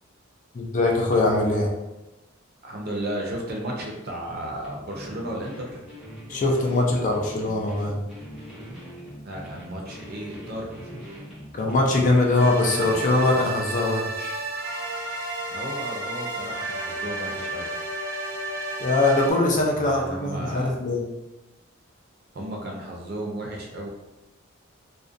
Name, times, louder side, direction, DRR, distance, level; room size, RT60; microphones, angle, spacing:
voice 1, 0.5-1.7 6.3-8.0 11.5-14.4 18.8-21.1, left 2 dB, 40° left, 0 dB, 0.4 m, -22 dB
voice 2, 2.6-5.9 9.2-11.1 15.5-17.7 19.5-20.8 22.3-23.9, right 1 dB, 50° right, -1 dB, 0.5 m, -34 dB
sound 1, 4.6-13.5, equal, ahead, 0.7 m, -42 dB
sound 2, 12.4-19.3, right 2 dB, 90° right, 0.8 m, -32 dB
2.4 x 2.1 x 2.5 m, 1.0 s
head